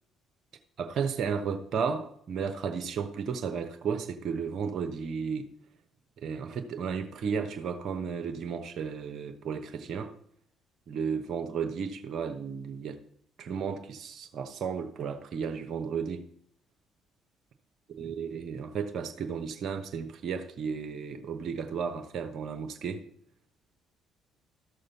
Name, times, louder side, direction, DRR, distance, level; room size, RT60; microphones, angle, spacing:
voice 1, 0.8-5.5 6.2-10.1 10.9-13.0 13.4-16.3 18.0-23.0, right 6 dB, 55° right, 1.0 m, -33 dB
13.5 x 6.6 x 4.1 m
figure-of-eight pair, 50°, 0 cm